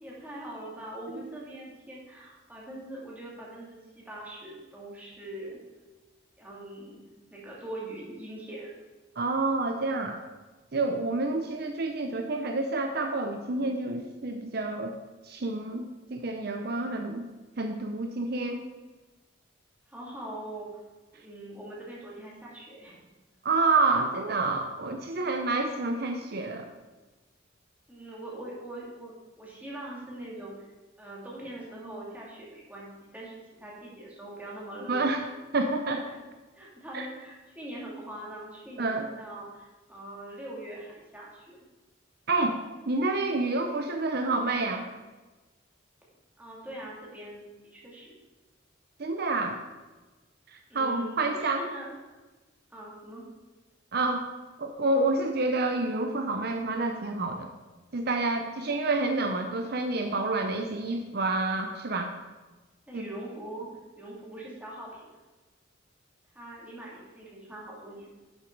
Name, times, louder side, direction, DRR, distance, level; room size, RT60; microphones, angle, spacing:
voice 1, 0.0-5.6 6.4-7.0 7.3-8.7 19.9-20.7 21.1-23.0 27.9-30.7 31.0-35.0 36.1-36.3 36.5-41.6 46.4-48.1 50.7-51.9 52.7-53.3 62.9-63.7 64.0-65.1 66.3-68.1, right 1 dB, 10° right, -5 dB, 2.6 m, -42 dB
voice 2, 9.2-10.2 10.7-14.9 15.2-17.2 17.6-18.6 23.4-26.6 34.9-35.2 35.5-36.1 36.9-37.1 38.8-39.1 42.3-42.6 42.9-44.9 49.0-49.6 50.5-51.6 53.9-54.3 54.6-57.5 57.9-62.1 62.9-63.1, right 3 dB, 55° right, 5 dB, 0.7 m, -28 dB
11.0 x 7.0 x 4.6 m, 1.2 s
head